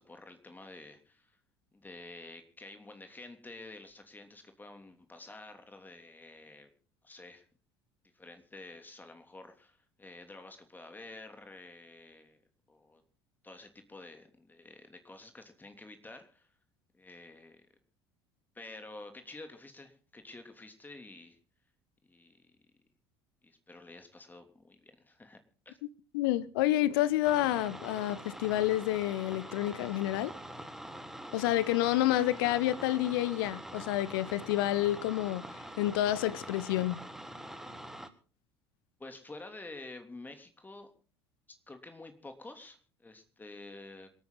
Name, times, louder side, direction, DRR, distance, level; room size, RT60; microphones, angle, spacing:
voice 1, 0.0-1.4 1.7-6.7 7.0-7.4 8.1-12.4 12.7-13.0 13.4-16.5 16.9-17.7 18.5-21.4 22.1-22.5 23.4-25.4 25.6-25.8 39.0-40.9 41.7-44.1, left 2 dB, 15° left, 3.0 m, -50 dB
voice 2, 26.1-30.3 31.3-35.4 35.8-37.0, left 14 dB, 60° left, 1.0 m, -29 dB
sound 1, 27.2-38.1, right 1 dB, 5° right, 1.6 m, -45 dB
27.0 x 9.4 x 4.0 m
figure-of-eight pair, 65°, 13 cm